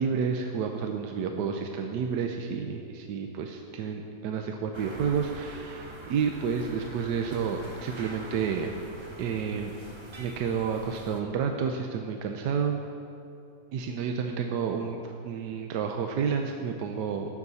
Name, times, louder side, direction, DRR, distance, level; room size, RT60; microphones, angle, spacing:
voice 1, 0.0-8.7 9.2-9.7 10.2-12.8 13.7-17.4, right 6 dB, 80° right, 4 dB, 1.3 m, -30 dB
sound 1, 4.7-11.2, right 1 dB, 25° right, 0.7 m, -45 dB
17.5 x 7.3 x 4.1 m, 2.7 s
omnidirectional pair, 1.8 m